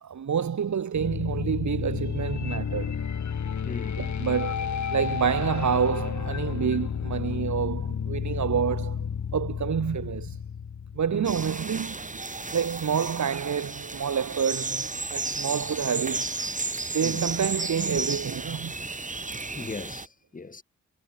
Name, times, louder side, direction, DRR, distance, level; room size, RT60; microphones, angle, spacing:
voice 1, 0.0-3.0 4.0-10.4 10.9-12.1 12.5-16.5 16.9-18.7, right 7 dB, 75° right, 2.4 m, -28 dB
sound 1, 0.9-11.9, left 7 dB, 75° left, 4.6 m, -31 dB
voice 2, 3.6-4.0 11.1-11.3 17.0-17.2 19.3-20.6, left 3 dB, 30° left, 1.7 m, -39 dB
sound 2, 11.2-20.1, right 3 dB, 25° right, 6.5 m, -33 dB
wide cardioid pair, 155°, 29 cm